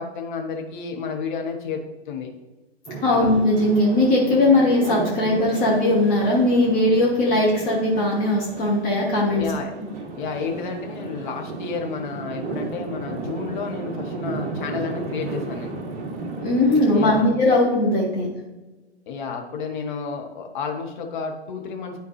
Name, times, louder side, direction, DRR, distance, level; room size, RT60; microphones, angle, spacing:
voice 1, 0.0-2.3 3.1-3.3 9.3-9.7 10.2-15.8 16.9-17.3 19.1-22.0, left 5 dB, 45° left, 3 dB, 1.4 m, -31 dB
sound 1, 2.9-17.2, right 3 dB, 25° right, 1.0 m, -34 dB
voice 2, 3.0-9.4 16.4-18.3, left 1 dB, 25° left, -5 dB, 1.6 m, -19 dB
11.0 x 4.4 x 3.2 m, 1.1 s
figure-of-eight pair, 115°, 33 cm